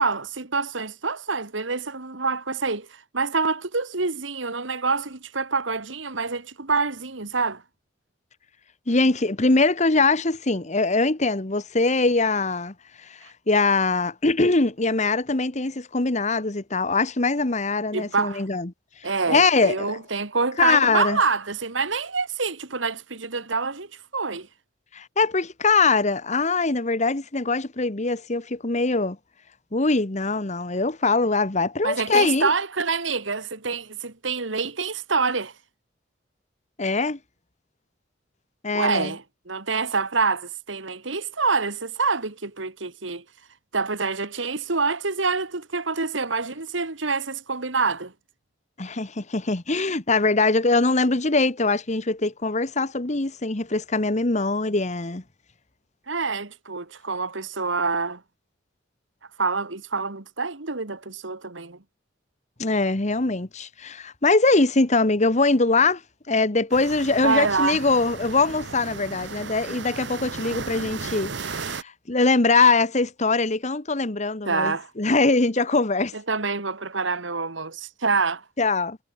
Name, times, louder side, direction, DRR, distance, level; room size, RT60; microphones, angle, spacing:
voice 1, 0.0-7.6 17.9-18.5 19.0-24.5 31.8-35.5 38.7-43.2 43.7-48.1 56.1-58.2 59.4-61.8 67.2-67.8 74.5-74.9 76.1-78.4, right 4 dB, 85° right, 2.2 m, -26 dB
voice 2, 8.9-12.7 13.0-13.2 13.5-18.7 19.3-20.0 20.6-21.2 24.9-29.2 29.7-32.5 36.8-37.2 38.6-39.1 48.8-55.2 62.6-66.0 66.3-76.1 78.6-79.0, left 3 dB, 40° left, 1.3 m, -22 dB
sound 1, 66.7-71.8, right 4 dB, 65° right, 1.3 m, -35 dB
head